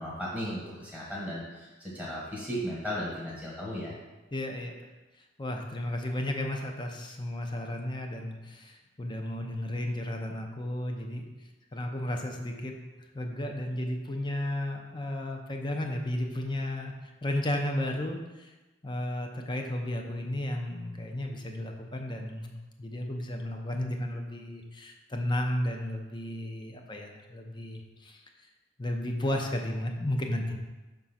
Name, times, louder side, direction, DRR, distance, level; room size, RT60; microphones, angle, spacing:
voice 1, 0.0-1.7 1.9-3.9, equal, 10° left, -6 dB, 1.3 m, -35 dB
voice 2, 4.3-4.7 5.4-11.3 11.7-12.7 13.1-16.9 17.2-18.5 18.8-22.5 22.8-28.2 28.8-30.6, left 1 dB, 25° left, 3 dB, 0.7 m, -33 dB
5.9 x 3.8 x 5.7 m, 1.1 s
head